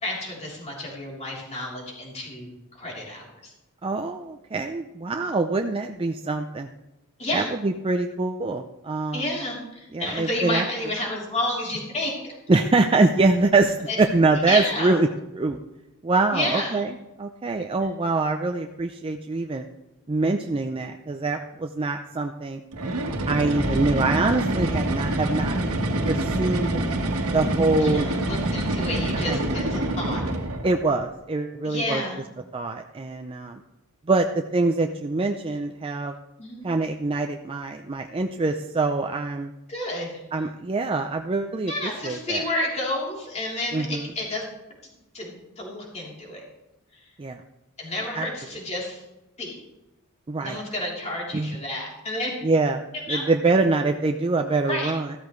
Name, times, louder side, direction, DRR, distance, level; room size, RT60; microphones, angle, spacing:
voice 1, 0.0-2.5 2.8-3.5 7.2-7.5 9.1-12.1 13.9-14.0 14.5-15.0 16.3-16.8 23.7-24.0 27.8-30.2 31.6-32.2 36.4-36.7 39.7-40.2 41.7-44.4 45.1-46.4 46.9-47.0 47.8-49.0 49.4-49.6 50.4-52.3 53.1-53.2 54.7-54.9, left 1 dB, 30° left, -3 dB, 3.4 m, -30 dB
voice 2, 3.8-6.7 7.3-9.3 9.9-10.6 12.5-15.1 15.4-15.6 16.0-16.9 17.2-19.6 20.1-22.6 23.3-25.6 26.1-26.8 27.3-28.1 29.1-29.6 30.1-30.3 30.6-32.0 32.5-33.6 34.1-36.1 36.6-39.5 40.3-42.4 43.7-44.1 47.2-47.4 48.2-48.3 50.3-50.6 51.3-51.6 52.4-52.8 53.1-55.1, right 3 dB, 25° right, 4 dB, 0.5 m, -24 dB
sound 1, 22.7-30.8, right 1 dB, 75° right, 1.5 m, -26 dB
14.0 x 13.0 x 3.2 m, 0.98 s
head